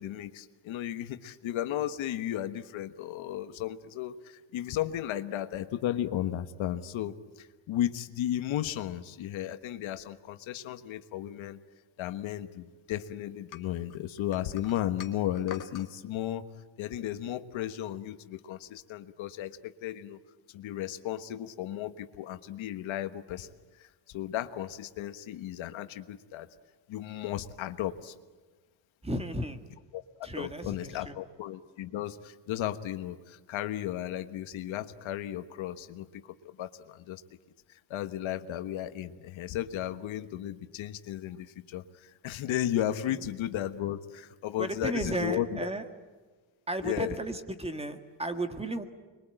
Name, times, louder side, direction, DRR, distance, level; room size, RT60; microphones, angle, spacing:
voice 1, 0.0-11.6 12.0-16.4 16.8-20.2 20.5-23.5 23.8-26.5 26.9-28.1 29.9-37.2 37.7-45.7 46.8-47.2, left 12 dB, 85° left, 10 dB, 1.4 m, -34 dB
sound 1, 13.5-15.9, left 8 dB, 45° left, 1.9 m, -46 dB
voice 2, 29.0-29.6 30.2-31.2 44.6-45.9 46.7-48.8, right 1 dB, 15° right, 8 dB, 1.8 m, -34 dB
26.5 x 23.0 x 9.0 m, 1.3 s
cardioid pair, 130°, 46 cm